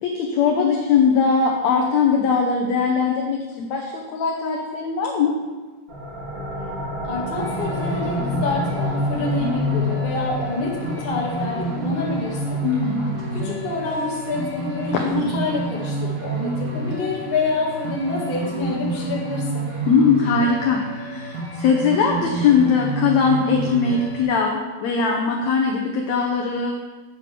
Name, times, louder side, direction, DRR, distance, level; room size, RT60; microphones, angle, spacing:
voice 1, 0.0-5.4 12.6-13.6 13.8-14.0 14.9-15.4 19.9-26.7, left 5 dB, 90° left, 0 dB, 1.5 m, -21 dB
sound 1, 5.9-17.2, left 3 dB, 15° right, 0.9 m, -31 dB
voice 2, 7.0-12.6 13.3-19.6, left 3 dB, 50° left, -3 dB, 0.6 m, -27 dB
sound 2, 7.4-24.2, right 3 dB, 50° right, 1.1 m, -29 dB
8.5 x 6.8 x 5.0 m, 1.3 s
omnidirectional pair, 4.2 m